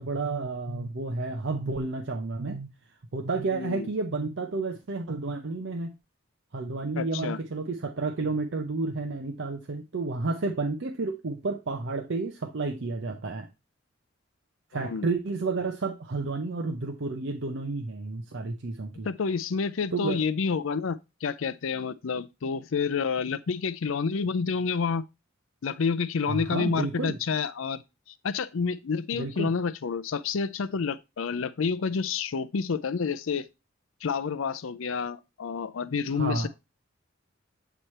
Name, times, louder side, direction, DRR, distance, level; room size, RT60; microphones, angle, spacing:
voice 1, 0.0-2.7 3.1-5.9 6.5-13.5 14.7-19.1 19.9-20.2 26.3-27.2 29.1-29.5 36.2-36.5, right 3 dB, 60° right, 0.6 m, -31 dB
voice 2, 3.5-3.9 7.0-7.4 14.7-15.1 19.0-25.0 25.6-27.8 28.2-33.5 34.0-36.5, left 5 dB, 75° left, 0.5 m, -29 dB
7.9 x 3.1 x 4.2 m
head